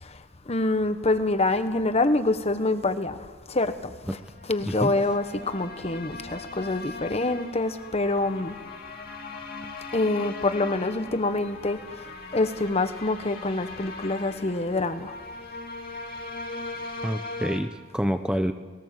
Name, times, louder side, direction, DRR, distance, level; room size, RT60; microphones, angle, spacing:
voice 1, 0.0-4.2 4.5-8.6 9.9-11.8 12.3-15.1, left 2 dB, 30° left, 10 dB, 1.2 m, -26 dB
sound 1, 4.2-17.6, left 3 dB, 50° left, 2.6 m, -40 dB
voice 2, 17.0-18.5, equal, 5° right, 8 dB, 0.7 m, -27 dB
20.0 x 18.5 x 7.6 m, 1.4 s
head